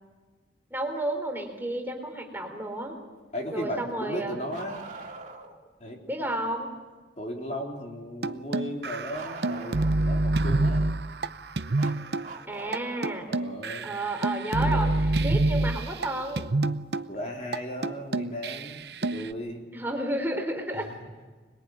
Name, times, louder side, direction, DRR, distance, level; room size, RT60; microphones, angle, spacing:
voice 1, 0.7-3.0 3.5-4.4 6.1-6.7 12.5-13.3 13.8-14.9 15.2-16.5 19.7-20.9, right 1 dB, 10° right, 2 dB, 3.7 m, -31 dB
voice 2, 3.3-4.8 5.8-6.3 7.2-10.9 13.3-13.9 14.6-14.8 17.1-19.7 20.7-21.0, equal, 40° left, 0 dB, 4.0 m, -36 dB
Bark, 4.5-5.6 9.1-10.2 11.8-13.3 14.9-15.0 17.0-17.1 18.2-18.3, right 3 dB, 40° right, 2.6 m, -43 dB
sound 1, 8.2-12.3 12.7-12.8 13.0-16.1 16.4-17.1 17.5-17.6 17.8-19.3, right 2 dB, 70° right, 0.8 m, -27 dB
26.0 x 21.0 x 9.7 m, 1.3 s
head